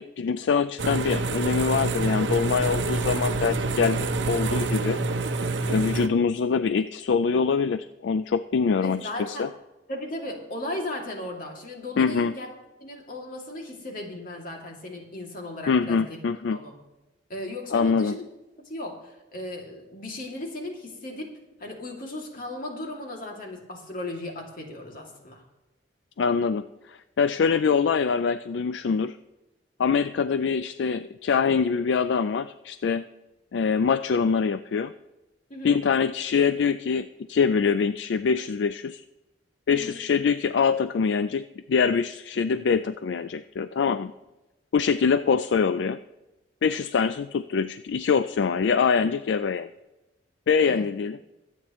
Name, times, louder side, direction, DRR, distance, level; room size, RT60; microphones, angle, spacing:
voice 1, 0.0-5.0 5.7-9.5 12.0-12.3 15.7-16.6 17.7-18.2 26.2-29.2 29.8-33.0 33.5-34.9 35.6-39.0 39.7-44.1 44.7-46.0 46.6-49.7 50.5-51.2, left 5 dB, 75° left, 12 dB, 0.4 m, -24 dB
sound 1, 0.8-6.1, right 3 dB, 85° right, 0.9 m, -27 dB
voice 2, 8.8-9.5 9.9-12.5 12.8-16.2 16.5-16.7 17.3-18.2 18.6-21.3 21.6-25.4 35.5-35.8 39.7-40.0 50.6-50.9, left 1 dB, 50° left, 1 dB, 2.5 m, -36 dB
23.0 x 8.7 x 3.1 m, 1.0 s
head